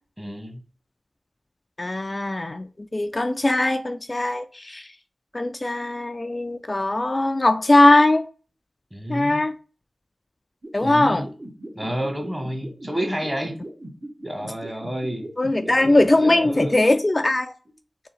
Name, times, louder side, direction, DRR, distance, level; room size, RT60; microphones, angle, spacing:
voice 1, 0.2-0.6 8.9-9.4 10.8-11.3 11.7-13.6 14.2-15.3 15.6-16.8, equal, 20° right, 1.3 m, -30 dB
voice 2, 1.8-2.6 2.9-4.9 5.3-8.2 9.1-9.5 10.7-11.2 15.4-17.5, left 2 dB, 35° left, 0.3 m, -20 dB
sound 1, 10.6-16.5, right 1 dB, 45° right, 1.6 m, -37 dB
3.7 x 2.7 x 4.2 m
cardioid pair, 45°, 0 cm